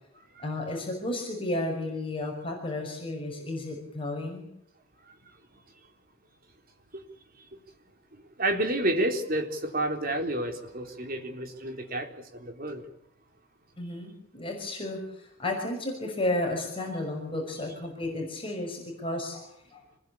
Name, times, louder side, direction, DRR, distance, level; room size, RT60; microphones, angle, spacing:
voice 1, 0.4-4.5 13.8-19.5 19.7-19.8, left 1 dB, 25° left, 6.0 m, -33 dB
voice 2, 5.1-5.6 6.9-7.0 7.5-7.6 8.1-12.8, right 1 dB, 45° right, 4.0 m, -31 dB
26.5 x 21.0 x 8.7 m
head